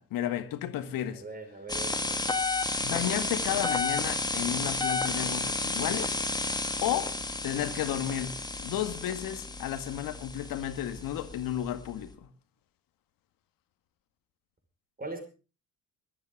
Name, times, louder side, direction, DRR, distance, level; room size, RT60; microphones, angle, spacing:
voice 1, 0.0-1.2 2.8-6.2 6.8-7.1 7.4-12.3, left 11 dB, 55° left, 2.0 m, -32 dB
voice 2, 1.1-2.3 15.0-15.2, right 3 dB, 20° right, 5.3 m, -40 dB
sound 1, 1.7-12.1, left 3 dB, 10° left, 1.9 m, -32 dB
22.0 x 13.0 x 3.7 m
figure-of-eight pair, 50°, 40 cm